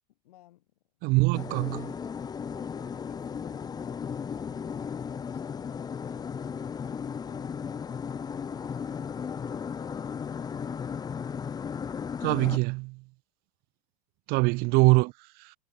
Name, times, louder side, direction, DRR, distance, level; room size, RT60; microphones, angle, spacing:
voice 1, 0.1-0.7 1.2-1.9 2.5-11.0, left 16 dB, 85° left, 7.1 m, -56 dB
voice 2, 1.0-1.9 12.2-13.0 14.3-15.1 15.4-15.5, right 26 dB, 55° right, 0.9 m, -23 dB
sound 1, 1.3-12.6, left 6 dB, 20° left, 1.3 m, -35 dB
supercardioid pair, 125°, 19 cm